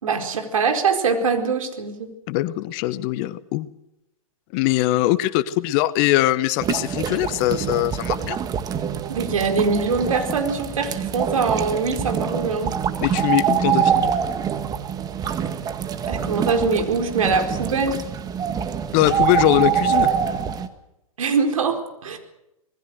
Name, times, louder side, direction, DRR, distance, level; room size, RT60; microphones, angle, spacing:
voice 1, 0.0-2.1 9.1-12.8 16.1-18.0 21.2-22.2, right 4 dB, 65° right, 5 dB, 4.5 m, -23 dB
voice 2, 2.3-3.7 4.5-8.4 13.0-14.1 18.9-20.1, left 16 dB, 35° left, 17 dB, 1.0 m, -21 dB
sound 1, 6.6-20.7, right 8 dB, 20° right, 1.7 m, -25 dB
26.5 x 20.0 x 6.6 m, 0.89 s
figure-of-eight pair, 115°, 18 cm